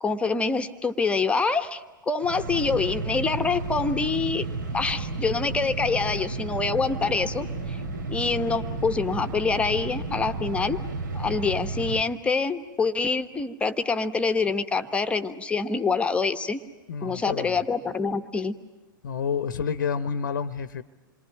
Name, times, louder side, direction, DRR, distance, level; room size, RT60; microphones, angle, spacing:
voice 1, 0.0-1.8 2.1-4.5 4.7-7.8 8.1-10.8 11.1-16.6 17.0-18.5, left 4 dB, 10° left, 8 dB, 1.2 m, -26 dB
sound 1, 2.2-12.0, right 3 dB, 65° right, 2.5 m, -32 dB
voice 2, 16.9-17.6 19.0-20.8, left 6 dB, 60° left, 13 dB, 0.9 m, -29 dB
28.0 x 23.0 x 9.1 m, 1.2 s
figure-of-eight pair, 105°, 11 cm